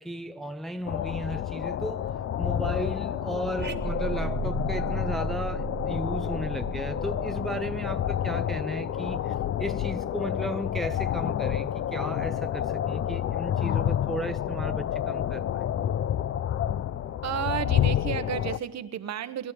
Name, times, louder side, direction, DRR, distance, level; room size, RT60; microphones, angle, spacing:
voice 1, 0.0-2.1 2.4-15.7, right 1 dB, ahead, 0.6 m, -35 dB
sound 1, 0.9-18.6, left 10 dB, 50° left, 0.5 m, -29 dB
sound 2, 3.6-8.2, right 6 dB, 35° right, 1.4 m, -36 dB
voice 2, 17.2-19.5, right 10 dB, 60° right, 1.0 m, -32 dB
19.5 x 11.5 x 6.2 m
cardioid pair, 90°, 30 cm